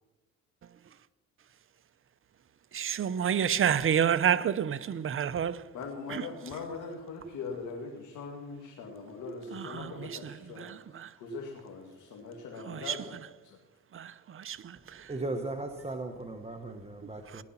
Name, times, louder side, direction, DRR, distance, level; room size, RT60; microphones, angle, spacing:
voice 1, 2.7-5.6 6.1-6.2 9.5-11.1 12.7-13.0 13.9-15.1 17.4-17.5, right 8 dB, 45° right, 0.7 m, -30 dB
voice 2, 5.7-13.2 13.4-13.6, left 4 dB, 80° left, 2.2 m, -41 dB
voice 3, 14.7-17.4, right 2 dB, 20° right, 1.2 m, -37 dB
18.0 x 11.0 x 5.8 m
cardioid pair, 90°, 30 cm